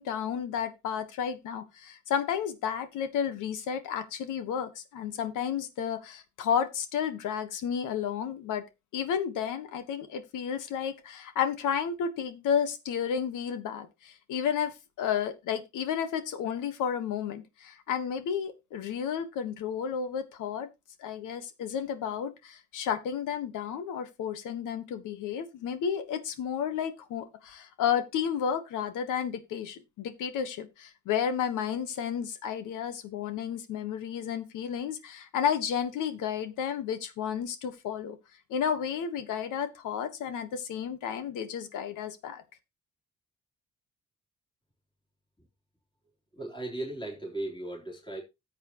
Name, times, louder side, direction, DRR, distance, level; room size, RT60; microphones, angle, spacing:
voice 1, 0.0-8.6 8.9-20.7 21.0-38.2 38.5-42.4, left 8 dB, 85° left, 1.5 m, -32 dB
voice 2, 46.3-48.2, right 1 dB, 15° left, 3.7 m, -36 dB
14.0 x 7.9 x 3.1 m
cardioid pair, 90°, 30 cm